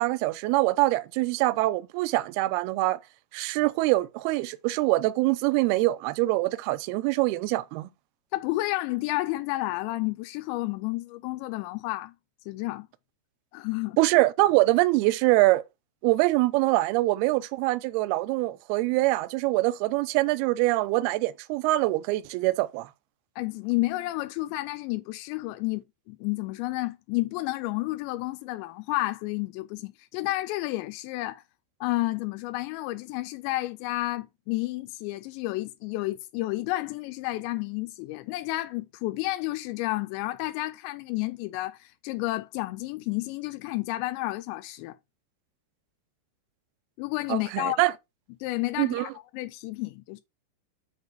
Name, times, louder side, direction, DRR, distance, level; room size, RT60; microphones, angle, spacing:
voice 1, 0.0-3.0 3.3-7.9 14.0-15.6 16.0-22.9 47.3-47.9 48.8-49.1, right 19 dB, 80° right, 2.3 m, -24 dB
voice 2, 8.3-12.1 12.5-12.9 13.5-14.0 23.4-31.4 31.8-45.0 47.0-47.8 48.4-50.2, left 19 dB, 85° left, 2.8 m, -31 dB
8.0 x 3.5 x 6.0 m
omnidirectional pair, 5.0 m